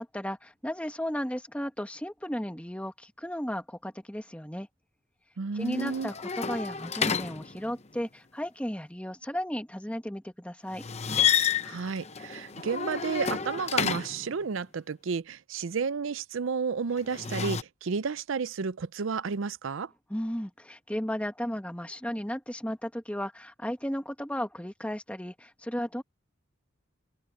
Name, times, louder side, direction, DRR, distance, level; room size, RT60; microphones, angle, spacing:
voice 1, 0.0-4.7 5.5-10.8 20.1-26.0, equal, 5° left, 1.6 m, -34 dB
voice 2, 5.4-6.1 11.6-19.9, right 5 dB, 70° right, 0.5 m, -32 dB
sound 1, 5.6-8.0 10.7-14.3 17.0-17.6, left 7 dB, 30° left, 0.8 m, -30 dB
open air
head